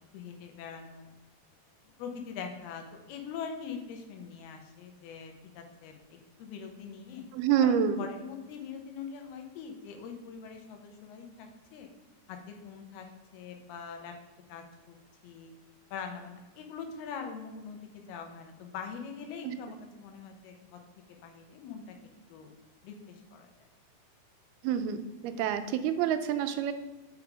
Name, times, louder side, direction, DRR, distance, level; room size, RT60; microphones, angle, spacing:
voice 1, 0.1-1.1 1.8-7.3 7.6-11.9 12.3-13.1 13.3-14.1 14.5-15.0 15.2-15.5 15.9-20.8 21.1-22.0 22.3-22.5 22.8-23.5, left 6 dB, 85° left, 4 dB, 2.9 m, -43 dB
voice 2, 7.3-8.0 19.4-19.6 24.6-25.0 25.2-26.7, right 9 dB, 90° right, 10 dB, 2.5 m, -27 dB
7.2 x 4.9 x 4.7 m, 1.1 s
omnidirectional pair, 4.4 m